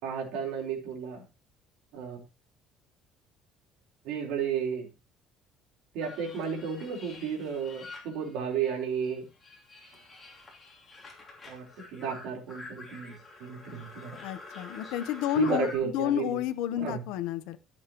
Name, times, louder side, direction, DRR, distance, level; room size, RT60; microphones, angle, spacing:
voice 1, 0.0-1.2 1.9-2.2 4.0-4.9 5.9-9.2 11.5-11.7 11.9-14.2 15.3-16.4 16.8-17.0, right 7 dB, 80° right, 3.9 m, -32 dB
sound 1, 6.0-8.8 9.0-15.8, left 3 dB, 15° left, 2.9 m, -48 dB
voice 2, 14.2-17.6, left 13 dB, 85° left, 0.9 m, -30 dB
15.0 x 7.1 x 3.0 m
cardioid pair, 155°, 0 cm